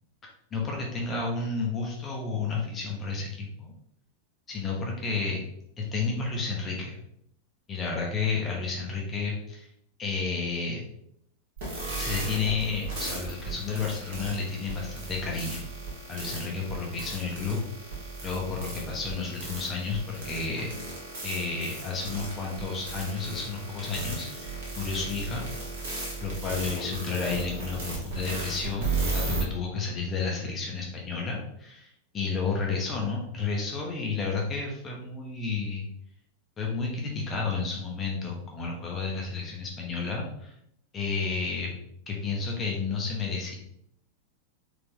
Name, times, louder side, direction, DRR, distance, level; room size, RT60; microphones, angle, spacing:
voice 1, 0.5-3.7 4.5-5.4 5.8-7.0 7.7-9.7 10.0-10.8 12.0-15.7 16.1-17.6 18.2-20.7 21.2-25.4 26.2-35.9 36.6-40.5 40.9-41.7 42.1-43.6, left 4 dB, 20° left, -1 dB, 0.9 m, -31 dB
sound 1, 11.6-29.4, right 3 dB, 50° right, 1.5 m, -35 dB
4.2 x 2.8 x 3.5 m, 0.74 s
figure-of-eight pair, 90°, 0 cm